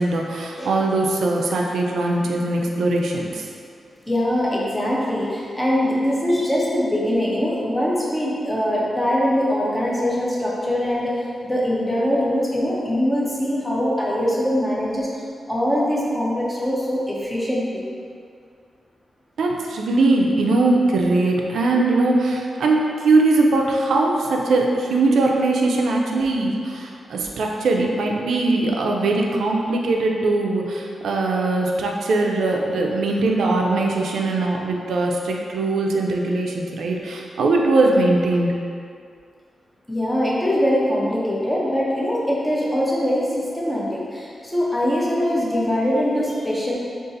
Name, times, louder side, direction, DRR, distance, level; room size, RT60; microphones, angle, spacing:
voice 1, 0.0-3.5 19.4-38.6, right 2 dB, 90° right, 0 dB, 0.3 m, -20 dB
voice 2, 4.1-15.1 15.5-17.9 39.9-46.7, equal, 10° left, -5 dB, 0.5 m, -22 dB
2.5 x 2.4 x 3.9 m, 2.3 s
wide cardioid pair, 160°, 0 cm